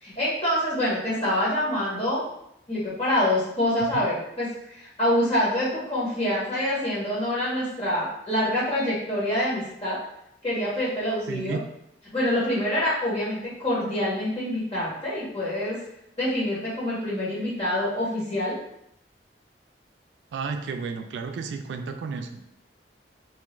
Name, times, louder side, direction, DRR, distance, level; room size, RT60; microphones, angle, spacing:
voice 1, 0.0-2.2 2.7-10.0 10.4-11.6 12.1-15.8 16.2-18.5, left 1 dB, 35° left, -8 dB, 1.4 m, -26 dB
voice 2, 11.3-11.6 20.3-22.4, right 5 dB, 75° right, 6 dB, 0.3 m, -32 dB
2.8 x 2.4 x 3.0 m, 0.76 s
head